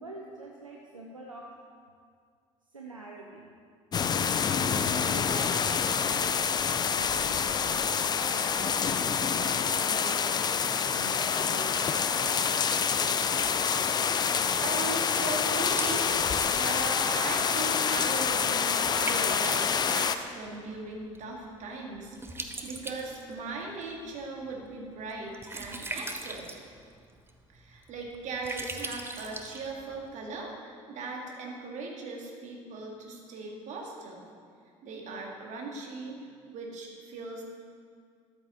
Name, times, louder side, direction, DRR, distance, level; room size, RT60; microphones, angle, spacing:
voice 1, 0.0-1.5 2.7-3.5 4.9-6.4 6.8-12.4, right 2 dB, 85° right, -1 dB, 0.6 m, -45 dB
sound 1, 3.9-20.2, left 6 dB, 25° left, 0.5 m, -27 dB
Liquid, 10.7-30.2, right 2 dB, 15° right, 0.8 m, -44 dB
voice 2, 14.6-16.2 16.5-26.5 27.5-34.2 34.8-36.2 36.5-37.4, right 3 dB, 45° right, 0 dB, 1.9 m, -39 dB
13.0 x 8.0 x 3.7 m, 2.1 s
figure-of-eight pair, 60°, 16 cm